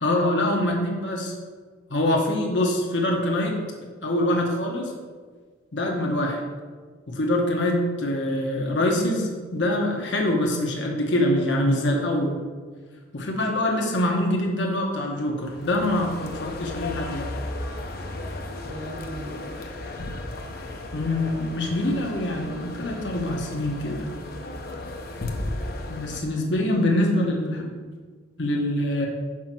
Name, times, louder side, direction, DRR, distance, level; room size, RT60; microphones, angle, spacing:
voice 1, 0.0-1.3 1.9-3.6 4.0-4.9 5.7-6.4 7.1-12.4 13.1-17.3 20.9-24.1 25.9-27.7 28.4-29.1, left 1 dB, 70° left, 1 dB, 1.1 m, -24 dB
sound 1, 15.4-26.2, left 2 dB, 55° left, 0.7 m, -35 dB
voice 2, 18.6-19.6 26.3-27.3, equal, 45° right, -3 dB, 2.0 m, -40 dB
6.1 x 5.0 x 6.0 m, 1.5 s
head